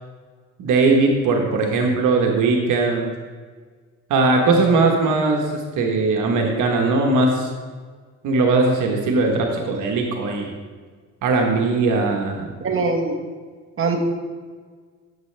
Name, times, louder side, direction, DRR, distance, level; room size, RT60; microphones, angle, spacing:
voice 1, 0.6-3.1 4.1-7.5 8.2-10.5 11.2-12.5, right 3 dB, 80° right, 2 dB, 1.3 m, -19 dB
voice 2, 12.6-13.1 13.8-14.0, right 4 dB, 45° right, 2 dB, 1.5 m, -22 dB
12.0 x 7.6 x 3.4 m, 1.5 s
cardioid pair, 90°, 30 cm